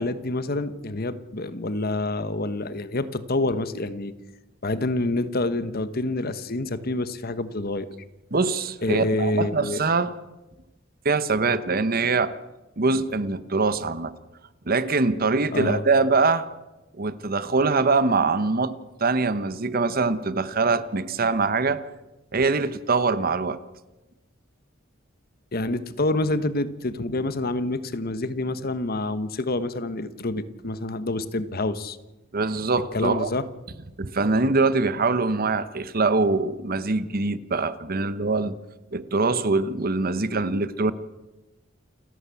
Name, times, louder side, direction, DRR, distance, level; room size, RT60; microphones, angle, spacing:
voice 1, 0.0-4.1 4.6-7.9 8.8-9.8 15.5-15.8 25.5-32.0 32.9-33.4 40.3-40.4, left 2 dB, 50° left, 13 dB, 1.2 m, -27 dB
voice 2, 8.3-10.1 11.0-12.3 12.8-14.1 14.7-16.4 17.0-18.7 19.0-21.8 22.3-23.6 32.3-33.3 34.0-38.5 38.9-40.9, right 3 dB, 50° right, 14 dB, 1.0 m, -23 dB
28.5 x 11.5 x 8.4 m, 1.0 s
head